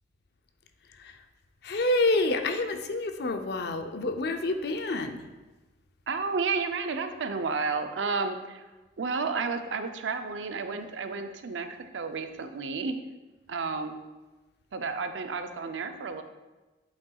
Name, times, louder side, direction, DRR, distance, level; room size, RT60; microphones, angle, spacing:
voice 1, 1.6-5.2, left 2 dB, 60° left, 7 dB, 0.5 m, -28 dB
voice 2, 6.1-8.6 9.0-13.0 13.5-14.0 14.7-16.2, right 4 dB, 90° right, 8 dB, 0.5 m, -31 dB
7.9 x 5.6 x 2.3 m, 1.2 s
head